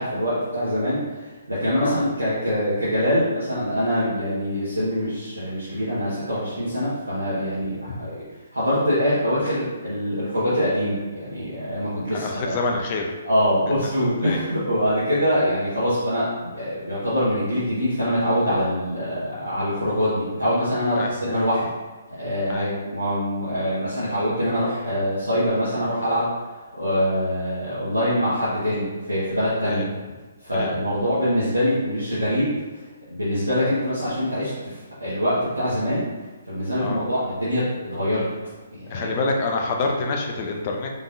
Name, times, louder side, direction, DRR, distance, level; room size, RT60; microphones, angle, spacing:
voice 1, 0.0-8.2 8.5-12.6 13.2-21.7 22.1-26.3 26.8-29.8 30.5-32.5 33.1-36.0 36.5-38.2 38.8-39.1, equal, 85° right, -12 dB, 1.5 m, -24 dB
voice 2, 12.1-13.1 14.2-14.4 21.0-21.1 22.5-22.7 29.6-29.9 30.5-30.7 36.8-37.0 38.9-40.9, left 3 dB, 35° left, 1 dB, 0.7 m, -26 dB
5.2 x 3.5 x 2.7 m, 1.3 s
figure-of-eight pair, 130°, 0 cm